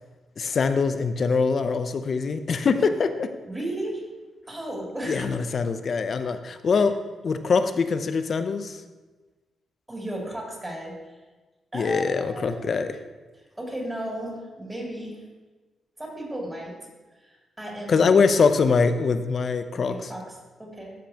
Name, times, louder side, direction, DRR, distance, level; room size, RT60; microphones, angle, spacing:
voice 1, 0.4-3.3 5.1-6.9 7.2-8.8 11.7-13.0 17.9-20.1, left 5 dB, 50° left, 9 dB, 0.6 m, -23 dB
voice 2, 3.5-4.0 4.5-5.3 6.7-6.8 9.9-10.9 11.7-12.8 13.6-15.2 16.0-16.8 17.3-18.1 19.7-20.9, right 1 dB, 15° right, -3 dB, 2.8 m, -34 dB
13.0 x 5.2 x 2.9 m, 1.2 s
cardioid pair, 85°, 0 cm